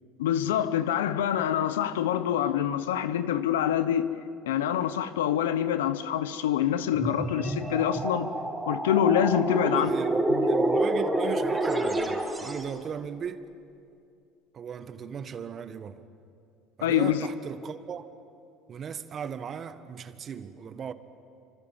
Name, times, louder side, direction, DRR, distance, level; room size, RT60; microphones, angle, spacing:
voice 1, 0.2-4.1 4.5-8.3 8.7-9.9 10.3-10.5 16.8-17.3, left 10 dB, 90° left, 1.0 m, -26 dB
sound 1, 6.9-12.7, right 2 dB, 15° right, 4.0 m, -28 dB
voice 2, 9.6-13.5 14.5-16.0 16.8-18.1 18.7-20.9, right 7 dB, 40° right, 1.5 m, -37 dB
26.5 x 25.0 x 7.4 m
hypercardioid pair, 80°, 0 cm